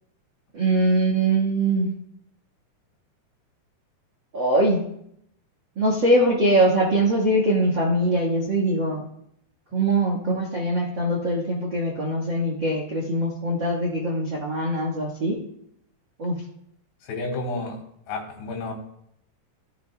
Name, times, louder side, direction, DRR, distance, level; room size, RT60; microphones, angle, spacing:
voice 1, 0.5-1.9 4.3-4.8 5.7-9.1 9.7-15.4 16.2-16.3, right 1 dB, 55° right, -1 dB, 1.3 m, -22 dB
voice 2, 17.0-17.8 18.1-18.7, left 2 dB, 85° left, 2 dB, 4.6 m, -30 dB
17.0 x 13.5 x 2.3 m, 0.75 s
omnidirectional pair, 4.7 m